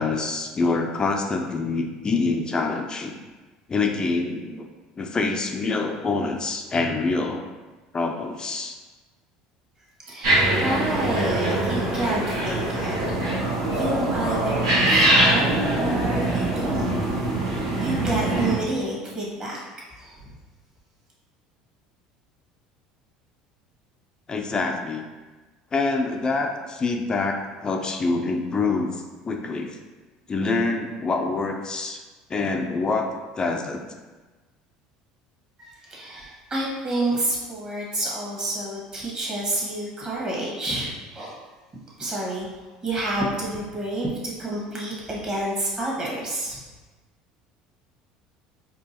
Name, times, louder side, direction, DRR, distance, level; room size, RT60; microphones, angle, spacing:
voice 1, 0.0-3.1 3.7-4.7 5.0-7.4 7.9-8.8 24.3-25.0 25.7-29.8 30.3-32.0 32.3-33.1 33.4-33.9, left 3 dB, 30° left, 3 dB, 0.4 m, -26 dB
voice 2, 10.0-13.0 13.3-17.0 17.8-19.6 20.0-20.3 35.6-41.3 42.0-42.5 42.8-46.6, right 2 dB, 30° right, -5 dB, 1.5 m, -29 dB
sound 1, 10.2-18.5, right 1 dB, 90° right, 1.2 m, -23 dB
4.5 x 2.5 x 2.9 m, 1.3 s
supercardioid pair, 90°, 3 cm